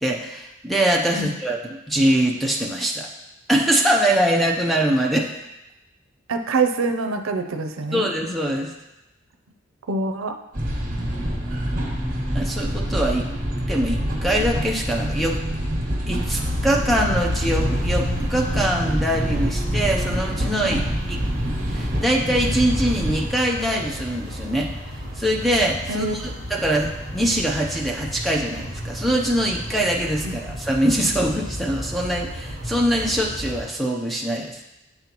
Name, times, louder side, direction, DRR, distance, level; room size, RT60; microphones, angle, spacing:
voice 1, 0.0-3.1 3.5-5.3 7.9-8.7 12.3-13.3 13.7-15.4 16.1-20.8 21.1-21.2 21.7-34.6, right 1 dB, ahead, 0 dB, 0.6 m, -23 dB
voice 2, 6.3-8.0 9.9-10.4 20.6-20.9 25.9-26.1 30.2-30.4, right 3 dB, 85° right, 7 dB, 0.5 m, -25 dB
sound 1, 10.5-23.3, equal, 40° right, 1.4 m, -26 dB
sound 2, 16.3-33.7, equal, 60° right, 1.3 m, -33 dB
8.0 x 5.5 x 3.0 m, 0.93 s
head